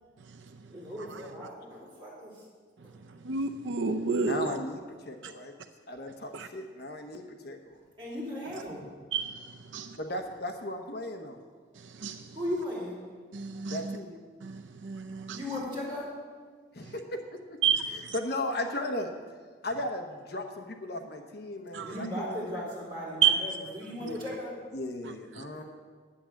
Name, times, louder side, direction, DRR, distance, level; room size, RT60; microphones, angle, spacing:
voice 1, 0.7-2.5 8.0-8.9 12.3-13.0 13.3-13.4 15.3-16.2 21.8-24.5 25.5-25.6, left 1 dB, 25° right, 4.3 m, -37 dB
voice 2, 3.3-4.5 6.3-6.5 9.1-9.3 9.7-9.9 12.0-12.2 13.3-13.8 14.4-15.4 17.6-17.8 21.7-21.9 23.2-23.3, right 7 dB, 75° right, 0.6 m, -28 dB
voice 3, 4.2-5.5 5.9-7.7 10.0-11.4 13.7-14.2 16.7-17.2 17.9-19.1 19.6-22.7 24.0-24.1 24.7-25.6, left 1 dB, 55° left, 1.0 m, -36 dB
9.9 x 8.8 x 7.1 m
head